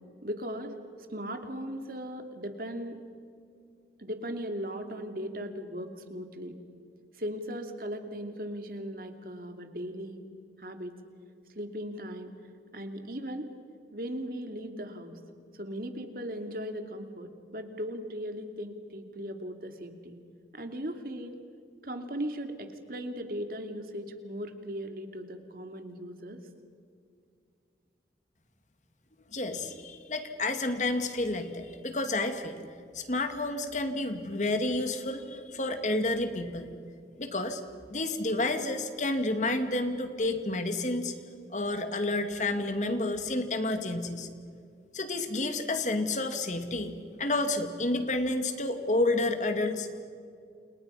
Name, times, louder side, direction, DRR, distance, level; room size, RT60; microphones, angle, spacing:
voice 1, 0.2-0.7 1.1-3.0 4.0-6.5 7.2-10.2 10.6-11.0 11.5-12.3 12.7-13.5 13.9-15.2 15.5-20.2 20.5-21.4 21.8-26.4, equal, 55° right, 6 dB, 2.6 m, -38 dB
voice 2, 29.3-32.7 32.9-36.7 37.2-37.6 37.9-41.2 41.5-44.3 44.9-46.9 47.2-50.0, left 2 dB, 45° left, 7 dB, 2.2 m, -30 dB
29.5 x 29.0 x 5.7 m, 2.4 s
head